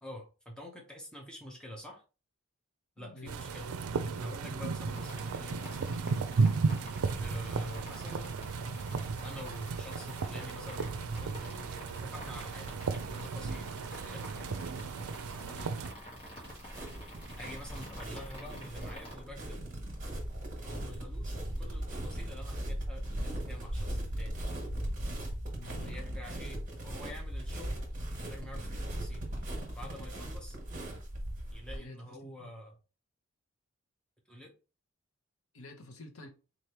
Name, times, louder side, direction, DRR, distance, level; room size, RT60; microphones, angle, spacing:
voice 1, 0.0-2.0 3.0-3.8 4.2-5.9 7.2-8.3 9.2-11.7 12.0-12.7 13.1-13.7 14.1-14.3 17.4-19.6 20.6-24.3 25.8-27.8 28.1-29.2 29.7-30.6 31.5-32.7 34.3-34.5, equal, 5° left, 0.8 m, -47 dB
voice 2, 3.0-3.4 15.4-15.7 25.5-26.0 31.7-32.5 35.5-36.3, left 1 dB, 70° left, 0.8 m, -50 dB
sound 1, 3.3-15.9, right 4 dB, 85° right, 0.4 m, -34 dB
sound 2, 4.9-19.1, equal, 25° left, 1.4 m, -48 dB
sound 3, 16.4-31.8, right 1 dB, 35° right, 1.6 m, -38 dB
4.0 x 3.2 x 2.9 m
head